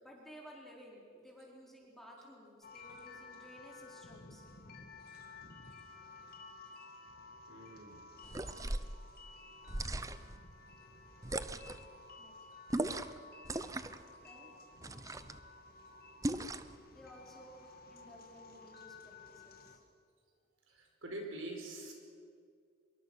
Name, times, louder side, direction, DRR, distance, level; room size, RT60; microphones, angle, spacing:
voice 1, 0.0-4.4 12.2-12.3 14.2-14.5 16.9-19.8, equal, ahead, -3 dB, 4.3 m, -55 dB
sound 1, 2.6-19.8, left 3 dB, 50° left, 2.2 m, -54 dB
voice 2, 7.5-8.0 8.3-8.4 20.7-21.9, right 1 dB, 70° right, 2 dB, 5.0 m, -45 dB
sound 2, 8.2-8.9 9.7-10.4 11.2-11.8 12.7-13.2 13.4-14.0 14.8-15.4 16.2-16.8, right 1 dB, 15° right, 0.7 m, -38 dB
25.5 x 23.5 x 6.3 m, 2.2 s
head